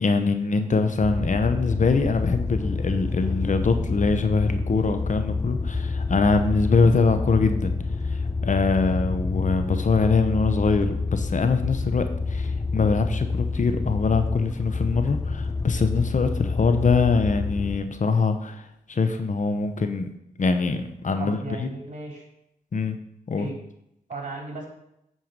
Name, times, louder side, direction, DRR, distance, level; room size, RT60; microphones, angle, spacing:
voice 1, 0.0-7.7 8.1-18.6 18.9-20.1 20.4-21.7 22.7-23.0 23.3-23.5, left 4 dB, 50° left, 8 dB, 1.0 m, -23 dB
sound 1, 1.0-17.8, left 3 dB, 15° left, 0.6 m, -28 dB
voice 2, 21.2-22.2 23.4-23.5 24.1-24.7, right 3 dB, 50° right, -1 dB, 3.4 m, -35 dB
9.0 x 4.6 x 5.3 m, 0.80 s
cardioid pair, 50°, 16 cm